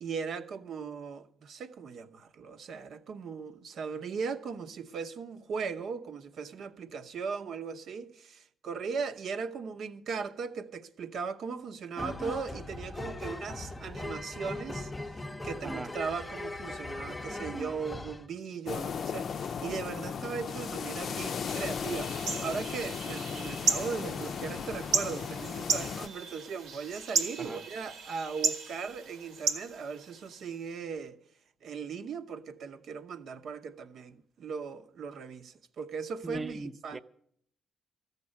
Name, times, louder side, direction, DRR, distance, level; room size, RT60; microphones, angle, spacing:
voice 1, 0.0-15.1 15.4-31.2 31.6-37.0, right 5 dB, 65° right, 0.9 m, -38 dB
sound 1, 12.0-18.2, left 2 dB, 15° left, 0.7 m, -39 dB
sound 2, 18.7-26.1, left 6 dB, 55° left, 0.5 m, -36 dB
sound 3, 21.2-30.5, right 4 dB, 80° right, 1.6 m, -35 dB
voice 2, 36.2-37.0, right 2 dB, 20° right, 0.8 m, -39 dB
14.0 x 6.7 x 9.7 m
cardioid pair, 90°, 0 cm